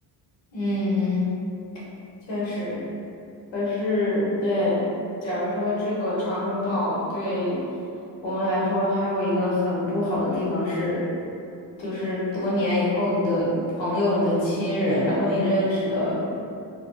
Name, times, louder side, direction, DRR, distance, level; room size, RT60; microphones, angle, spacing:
voice 1, 0.5-1.3 2.3-2.8 3.5-4.8 5.2-7.6 8.2-11.0 11.8-16.3, left 1 dB, 70° left, -8 dB, 1.2 m, -25 dB
3.2 x 2.3 x 2.5 m, 2.6 s
cardioid pair, 90°, 47 cm